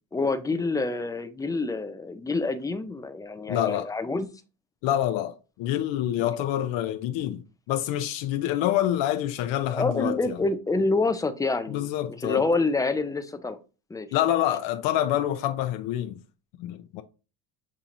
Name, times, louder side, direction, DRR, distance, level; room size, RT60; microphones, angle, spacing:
voice 1, 0.1-4.3 9.6-11.9 12.2-13.6 13.9-14.1, left 3 dB, 10° left, 0.3 m, -27 dB
voice 2, 3.5-3.9 4.8-7.4 7.7-10.4 11.7-12.5 14.1-16.2 16.6-17.0, left 12 dB, 70° left, 0.6 m, -27 dB
7.3 x 2.8 x 2.5 m
cardioid pair, 110°, 47 cm